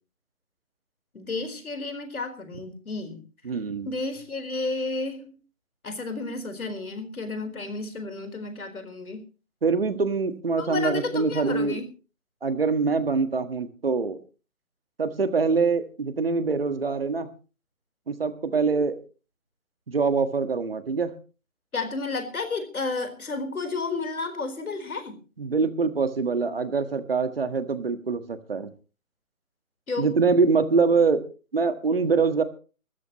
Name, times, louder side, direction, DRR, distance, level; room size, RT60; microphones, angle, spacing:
voice 1, 1.1-3.2 3.8-5.4 5.8-9.2 10.6-11.9 21.7-25.2 29.9-30.1, left 3 dB, 85° left, 7 dB, 4.3 m, -32 dB
voice 2, 3.4-3.9 9.6-11.8 12.4-14.2 15.0-17.3 18.1-19.0 19.9-21.1 25.4-28.7 30.0-31.2 31.5-32.4, right 4 dB, 40° right, 10 dB, 1.6 m, -24 dB
24.5 x 13.5 x 3.1 m, 0.35 s
hypercardioid pair, 180°, 42 cm